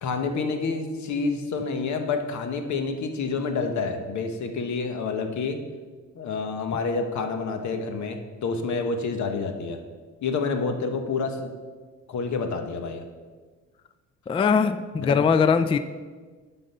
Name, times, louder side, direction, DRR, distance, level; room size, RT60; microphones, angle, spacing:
voice 1, 0.0-5.6 6.1-9.8 10.2-11.5 12.1-13.0 15.0-15.3, left 4 dB, 70° left, 6 dB, 1.1 m, -28 dB
voice 2, 14.3-15.8, left 5 dB, 20° left, 11 dB, 0.3 m, -21 dB
11.5 x 3.9 x 5.4 m, 1.4 s
cardioid pair, 90°, 30 cm